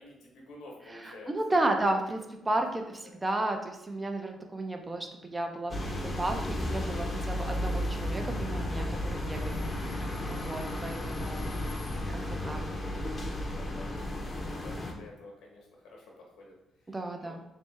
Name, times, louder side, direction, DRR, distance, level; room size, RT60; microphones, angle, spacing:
voice 1, 0.0-2.0 2.8-3.2 4.5-5.0 13.5-13.9 14.6-17.4, left 2 dB, 85° left, -1 dB, 1.0 m, -51 dB
voice 2, 1.0-2.2 2.5-11.8 12.1-12.6 16.9-17.4, right 2 dB, 20° right, 4 dB, 0.5 m, -33 dB
sound 1, 5.7-14.9, left 1 dB, 30° left, 0.6 m, -33 dB
3.3 x 3.1 x 3.2 m, 0.87 s
cardioid pair, 90°, 0 cm